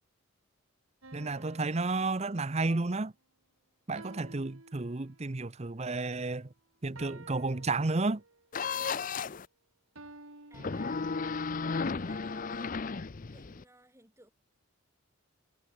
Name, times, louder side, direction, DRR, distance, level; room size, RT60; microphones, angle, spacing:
sound 1, 1.0-2.8 3.9-5.4 6.9-8.5 9.9-11.0, right 2 dB, 80° right, 4.7 m, -53 dB
voice 1, 1.1-3.1 3.9-6.5 6.8-8.2, right 3 dB, 30° right, 0.7 m, -32 dB
sound 2, 8.5-9.5 10.5-13.6, left 4 dB, 40° left, 0.6 m, -34 dB
voice 2, 10.5-11.2 11.7-12.8 13.3-14.3, right 1 dB, 15° right, 7.2 m, -57 dB
head